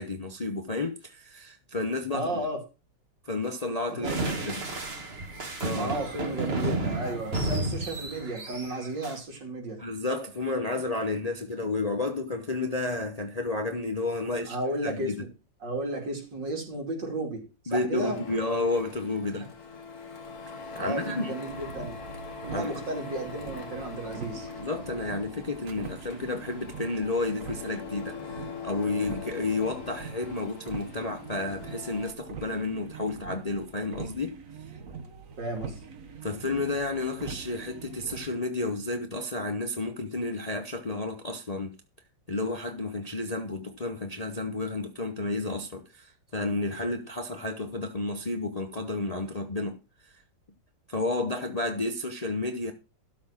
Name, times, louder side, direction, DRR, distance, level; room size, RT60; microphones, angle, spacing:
voice 1, 0.0-2.3 3.3-4.6 5.6-5.9 9.8-14.6 14.8-15.2 17.7-19.5 20.8-21.3 22.5-22.7 24.6-34.4 36.2-41.7 42.3-50.2 50.9-52.7, left 2 dB, 30° left, 0.7 m, -31 dB
voice 2, 2.1-2.6 4.0-4.5 5.8-9.8 14.5-15.3 15.6-18.2 19.4-19.5 20.8-22.0 22.4-24.5 35.4-35.8, right 1 dB, 70° right, 3.4 m, -34 dB
sound 1, 4.0-9.2, right 2 dB, 35° right, 1.9 m, -32 dB
Printer, 17.9-32.1, left 5 dB, 55° left, 1.8 m, -42 dB
sound 2, 21.5-38.3, right 5 dB, 50° right, 1.5 m, -43 dB
12.5 x 4.3 x 7.2 m
omnidirectional pair, 2.0 m